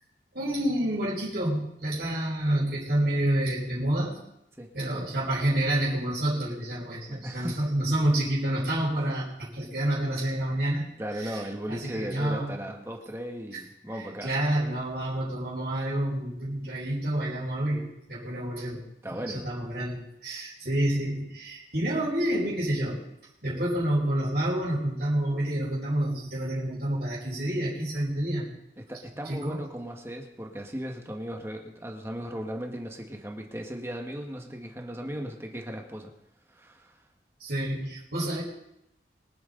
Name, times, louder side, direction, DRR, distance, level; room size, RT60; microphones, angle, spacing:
voice 1, 0.3-4.2 4.7-10.8 11.2-11.4 11.7-12.6 13.9-18.8 19.1-23.0 23.4-28.5 29.2-29.6 37.4-38.4, right 1 dB, 65° right, -10 dB, 5.1 m, -28 dB
voice 2, 7.1-7.7 11.0-14.3 19.0-19.5 28.8-36.1 36.5-36.9, equal, 15° right, 2 dB, 1.6 m, -37 dB
24.5 x 9.5 x 4.0 m, 0.81 s
head